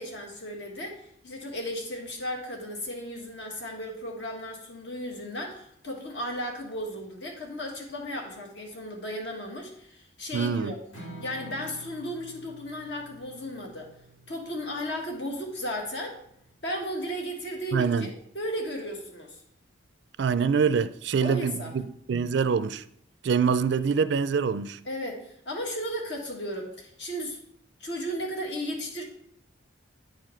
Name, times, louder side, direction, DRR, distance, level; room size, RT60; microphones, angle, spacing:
voice 1, 0.0-10.8 11.2-13.9 14.3-16.2 16.6-19.4 21.2-21.8 24.8-27.4 27.8-29.0, equal, 60° left, 1.6 m, -35 dB
voice 2, 10.3-10.7 17.7-18.1 20.2-21.8 22.1-22.8 23.2-24.8, right 6 dB, 65° right, 0.3 m, -25 dB
Strum, 10.9-17.2, right 2 dB, 80° left, 2.3 m, -49 dB
9.1 x 4.8 x 4.5 m
head